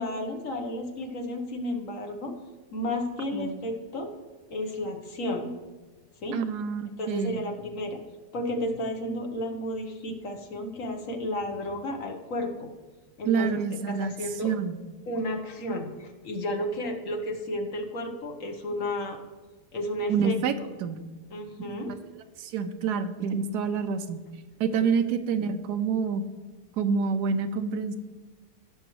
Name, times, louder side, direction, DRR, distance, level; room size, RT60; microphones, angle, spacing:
voice 1, 0.0-2.3 2.7-4.1 4.5-5.5 6.2-6.4 7.0-8.0 8.3-12.7 13.2-13.6 13.9-14.5 15.1-19.2 19.7-20.4 21.3-21.9 24.7-24.8, left 1 dB, 55° left, 4 dB, 1.4 m, -32 dB
voice 2, 3.3-3.7 6.3-7.4 13.3-14.1 14.4-14.7 20.1-20.5 20.8-21.0 22.4-24.2 24.6-26.2 26.8-28.0, right 6 dB, 85° right, 10 dB, 1.2 m, -27 dB
16.5 x 6.3 x 3.1 m, 1.3 s
omnidirectional pair, 1.7 m